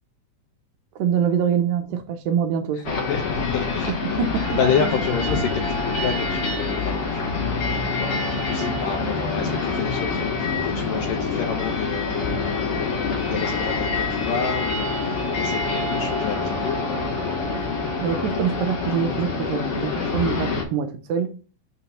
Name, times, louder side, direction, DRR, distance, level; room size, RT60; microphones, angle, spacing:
voice 1, 1.0-3.0 3.9-4.6 18.0-21.3, right 7 dB, 85° right, 2.0 m, -25 dB
sound 1, 2.8-20.6, left 3 dB, 60° left, 1.6 m, -26 dB
voice 2, 3.1-4.2 4.6-16.8, left 6 dB, 75° left, 2.1 m, -29 dB
6.1 x 2.9 x 5.6 m
omnidirectional pair, 4.6 m